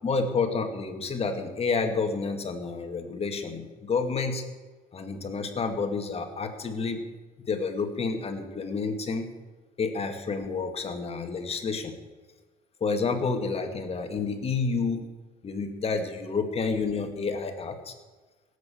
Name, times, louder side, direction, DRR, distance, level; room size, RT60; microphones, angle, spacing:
voice 1, 0.0-4.4 4.9-7.0 7.5-9.3 9.8-12.0 12.8-15.1 15.4-17.9, left 4 dB, 35° left, 6 dB, 2.1 m, -29 dB
17.5 x 8.4 x 7.1 m, 1.3 s
cardioid pair, 110°, 17 cm